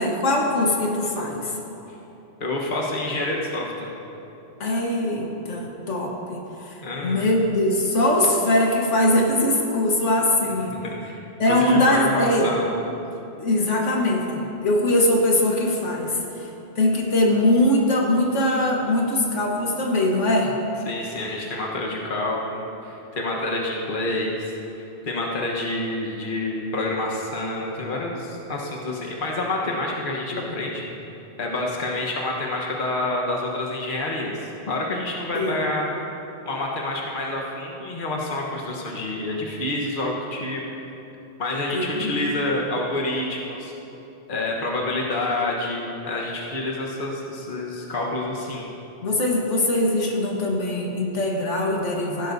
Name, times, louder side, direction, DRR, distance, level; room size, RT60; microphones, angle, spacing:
voice 1, 0.0-1.6 4.6-10.7 11.4-12.5 13.4-16.5 16.8-20.5 30.3-30.6 35.3-35.6 41.7-42.3 49.0-52.3, left 1 dB, 85° left, -1 dB, 1.7 m, -22 dB
voice 2, 2.4-3.9 6.8-7.3 10.7-11.2 11.6-12.7 20.9-30.9 31.4-35.9 36.4-40.6 41.4-43.7 44.3-48.6, left 2 dB, 45° left, -2 dB, 1.4 m, -28 dB
15.5 x 12.0 x 2.7 m, 3.0 s
omnidirectional pair, 1.2 m